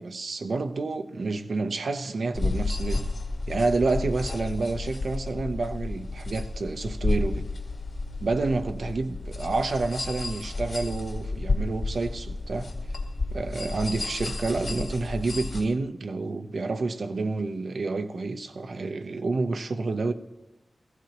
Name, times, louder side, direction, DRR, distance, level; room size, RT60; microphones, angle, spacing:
voice 1, 0.0-3.1 3.5-7.5 8.2-12.7 13.3-20.1, right 3 dB, 70° right, 0.7 m, -29 dB
sound 1, 2.3-15.6, left 3 dB, 60° left, 2.1 m, -31 dB
16.0 x 16.0 x 3.0 m
wide cardioid pair, 115°, 0 cm